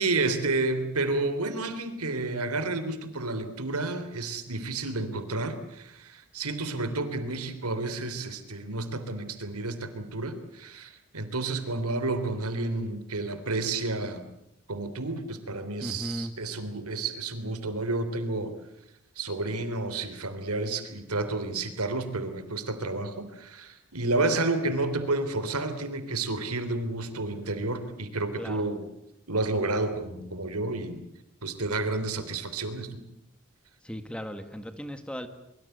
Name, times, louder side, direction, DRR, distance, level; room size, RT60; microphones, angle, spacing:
voice 1, 0.0-14.3 14.7-18.5 19.2-28.8 29.3-31.0 31.4-33.0, right 2 dB, 90° right, 10 dB, 3.5 m, -30 dB
voice 2, 15.8-16.3 28.4-28.6 33.8-35.3, equal, 5° left, 9 dB, 1.7 m, -36 dB
24.0 x 23.0 x 8.0 m, 0.80 s
head